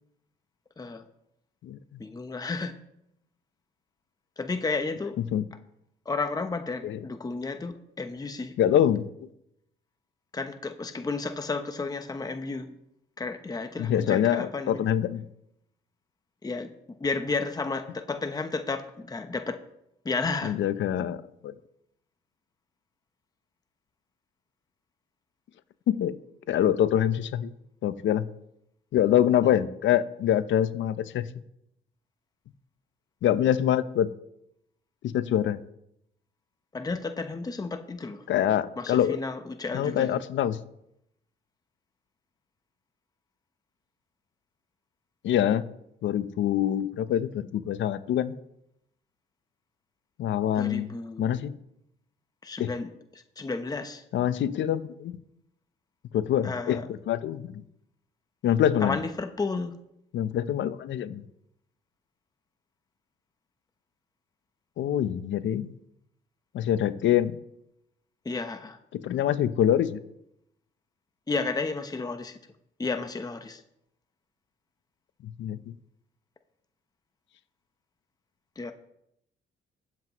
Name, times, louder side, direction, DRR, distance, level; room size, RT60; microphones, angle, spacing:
voice 1, 0.8-1.1 2.0-2.7 4.4-5.2 6.0-8.6 10.3-12.8 13.2-14.9 16.4-16.7 17.0-19.6 20.0-20.6 29.4-29.5 36.7-38.2 38.8-40.2 50.5-51.4 52.4-54.0 56.4-56.8 58.8-59.7 68.2-68.8 71.3-72.4 72.8-73.6 78.6-78.7, left 3 dB, 20° left, 7 dB, 0.9 m, -32 dB
voice 2, 1.6-2.0 5.3-5.4 6.8-7.0 8.6-9.1 13.8-15.3 20.4-21.5 25.9-26.2 26.5-27.5 27.8-28.3 28.9-31.2 33.2-34.1 35.0-35.6 38.3-39.2 39.7-40.6 45.2-45.6 46.0-48.3 50.2-50.9 51.2-51.5 52.6-52.7 54.1-55.2 56.1-56.8 57.1-57.6 58.4-59.0 60.1-61.2 64.8-65.7 66.5-67.4 69.0-70.0 75.4-75.6, left 10 dB, 75° left, 13 dB, 0.7 m, -25 dB
21.0 x 7.7 x 3.1 m, 0.78 s
cardioid pair, 90°, 20 cm